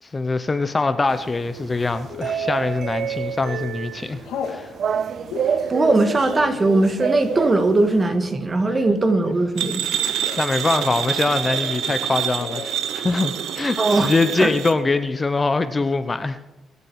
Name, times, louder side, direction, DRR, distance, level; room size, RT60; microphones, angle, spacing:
voice 1, 0.0-4.7 10.0-16.5, left 3 dB, 25° left, 11 dB, 0.8 m, -23 dB
sound 1, 1.1-8.1, right 7 dB, 55° right, 0.5 m, -28 dB
Telephone, 2.1-2.6 3.2-3.4 3.7-4.6 5.2-10.7 10.9-12.0 12.3-12.8 13.1-13.2 13.4-14.0, left 6 dB, 85° left, 2.3 m, -36 dB
voice 2, 5.7-9.8 13.8-14.1 14.4-14.5, right 2 dB, 30° right, 7 dB, 1.8 m, -19 dB
sound 2, 9.6-14.8, right 9 dB, 75° right, 0.9 m, -26 dB
23.5 x 8.3 x 4.7 m, 0.98 s
cardioid pair, 90°, 0 cm